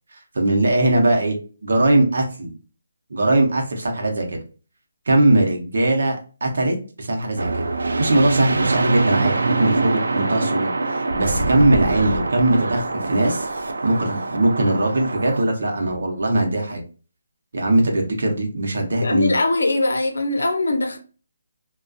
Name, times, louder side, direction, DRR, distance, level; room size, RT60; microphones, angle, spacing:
voice 1, 0.1-2.6 3.1-4.4 5.1-7.7 8.0-13.5 13.8-16.8 17.5-19.3, right 2 dB, 60° right, 0.7 m, -20 dB
sound 1, 7.4-15.4, right 3 dB, 85° right, 0.3 m, -24 dB
voice 2, 18.9-21.0, left 2 dB, 90° left, 0.6 m, -21 dB
2.3 x 2.2 x 2.4 m
hypercardioid pair, 175°, 0 cm